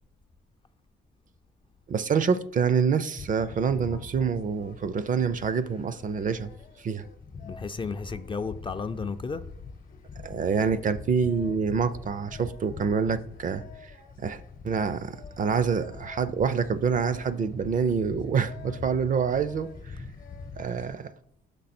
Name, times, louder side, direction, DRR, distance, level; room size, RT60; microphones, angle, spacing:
voice 1, 1.9-6.5 6.8-7.0 10.2-13.6 14.2-19.7 20.6-21.1, right 6 dB, 40° right, 0.5 m, -26 dB
sound 1, 3.2-20.9, left 5 dB, 45° left, 0.8 m, -44 dB
voice 2, 7.4-9.4, left 4 dB, 25° left, 0.4 m, -33 dB
6.7 x 5.7 x 4.3 m
cardioid pair, 90°, 20 cm